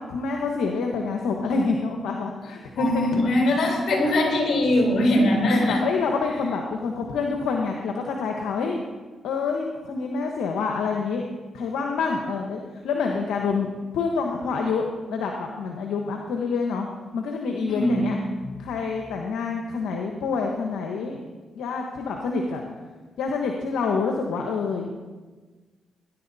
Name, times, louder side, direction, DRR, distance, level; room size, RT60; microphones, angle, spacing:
voice 1, 0.1-3.1 5.2-8.8 9.2-11.3 11.5-16.9 17.1-18.2 18.6-21.2 21.5-22.6 23.2-24.9, left 4 dB, 85° left, 2 dB, 1.2 m, -27 dB
voice 2, 2.8-5.8 17.7-18.2 18.4-18.6, left 1 dB, 65° left, 1 dB, 4.1 m, -22 dB
20.0 x 10.5 x 4.1 m, 1.4 s
supercardioid pair, 60°, 0 cm